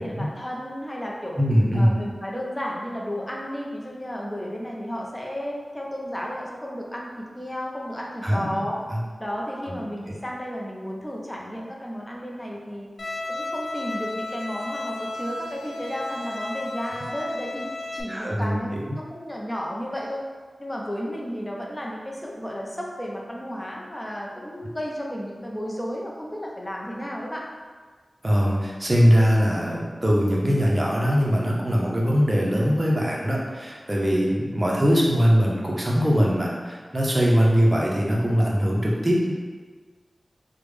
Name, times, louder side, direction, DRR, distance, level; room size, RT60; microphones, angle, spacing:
voice 1, 0.0-1.4 1.7-8.8 9.2-12.9 13.3-17.7 17.9-20.2 20.6-27.4, equal, 15° left, -2 dB, 0.5 m, -33 dB
voice 2, 1.4-1.9 8.2-8.5 8.9-9.0 9.7-10.1 18.1-18.6 28.2-39.3, equal, 25° right, -3 dB, 0.6 m, -21 dB
Bowed string instrument, 13.0-18.0, left 2 dB, 90° left, 0.4 m, -33 dB
3.3 x 2.1 x 3.3 m, 1.4 s
wide cardioid pair, 75°, 0 cm